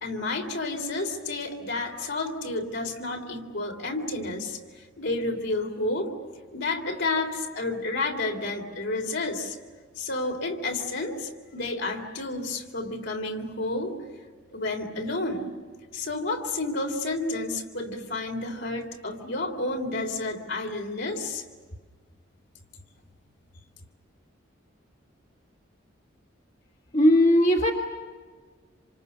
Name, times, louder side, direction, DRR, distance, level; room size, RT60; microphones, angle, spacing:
voice 1, 0.0-6.1 6.5-9.6 10.0-14.0 14.5-15.5 15.9-21.4, left 2 dB, 65° left, 3 dB, 3.4 m, -30 dB
voice 2, 26.9-27.7, left 1 dB, 40° left, 2 dB, 1.7 m, -18 dB
27.5 x 27.5 x 6.9 m, 1.5 s
head